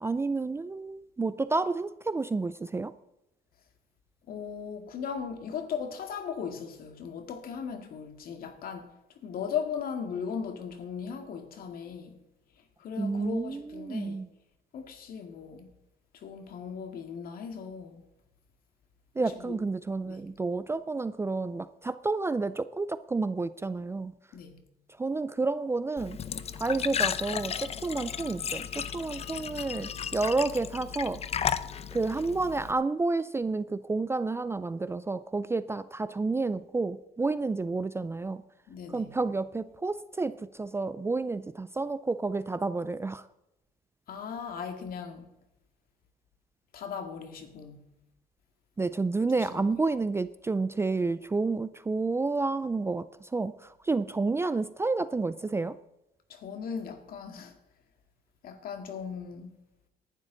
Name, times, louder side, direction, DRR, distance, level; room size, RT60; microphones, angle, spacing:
voice 1, 0.0-2.9 13.0-14.3 19.2-24.1 25.0-26.2 26.5-31.2 31.9-38.4 38.9-43.3 48.8-55.8, right 3 dB, 15° right, 0.4 m, -30 dB
voice 2, 4.3-12.2 12.8-14.2 14.7-15.7 16.1-18.1 19.3-19.6 20.0-20.3 24.3-24.6 38.7-39.1 44.1-45.3 46.7-47.9 49.4-49.6 56.3-57.6 58.4-59.6, left 6 dB, 60° left, 2.0 m, -38 dB
Glass / Trickle dribble / Fill (with liquid), 26.0-32.7, left 8 dB, 40° left, 0.6 m, -34 dB
18.5 x 11.5 x 3.9 m
cardioid pair, 110°, 17 cm